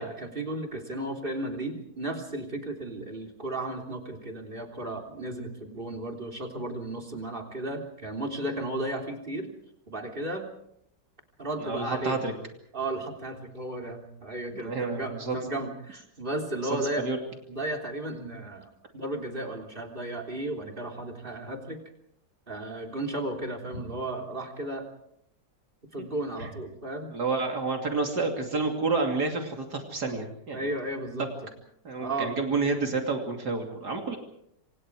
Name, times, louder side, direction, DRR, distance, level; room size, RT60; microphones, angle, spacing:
voice 1, 0.0-9.5 9.9-10.5 11.4-12.2 12.7-17.1 17.5-21.8 22.5-24.8 25.9-27.1 30.5-31.5 32.0-32.3, right 1 dB, 30° right, 7 dB, 3.6 m, -34 dB
voice 2, 11.6-12.3 14.5-15.6 16.6-17.2 26.0-26.1 26.4-26.5 27.1-30.7 31.8-34.2, right 3 dB, 70° right, 3 dB, 3.3 m, -29 dB
27.0 x 27.0 x 4.8 m, 0.74 s
omnidirectional pair, 1.8 m